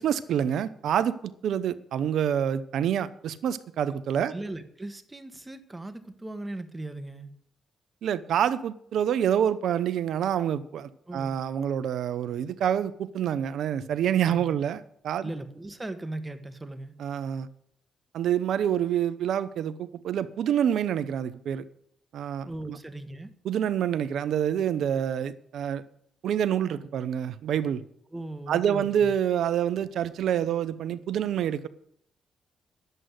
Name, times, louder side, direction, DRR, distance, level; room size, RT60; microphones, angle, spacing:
voice 1, 0.0-4.3 8.0-15.3 17.0-17.5 18.1-21.6 22.1-22.8 23.4-25.8 26.2-27.8 28.5-31.7, right 9 dB, 75° right, 0.8 m, -27 dB
voice 2, 4.3-7.3 11.1-11.4 14.3-14.6 15.2-16.9 22.4-23.3 28.1-29.1, right 2 dB, 20° right, 1.6 m, -38 dB
11.0 x 7.9 x 8.1 m
supercardioid pair, 65°, 0 cm